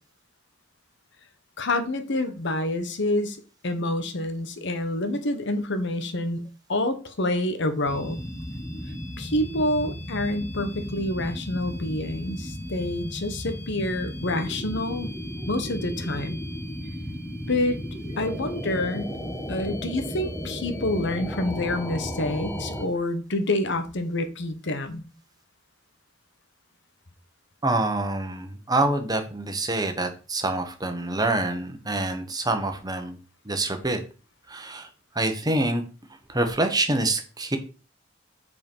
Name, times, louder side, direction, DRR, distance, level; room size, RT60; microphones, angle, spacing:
voice 1, 1.6-3.4 3.6-6.4 6.7-8.2 9.2-15.1 15.5-16.4 17.5-17.8 18.2-19.1 19.5-25.0, left 1 dB, 65° left, 9 dB, 1.2 m, -27 dB
sound 1, 7.9-22.9, equal, 10° left, 1.4 m, -34 dB
voice 2, 27.6-33.2 33.4-34.0 34.5-34.9 35.1-35.8 36.3-37.6, right 2 dB, 20° right, 6 dB, 1.3 m, -26 dB
8.1 x 4.7 x 5.5 m, 0.34 s
head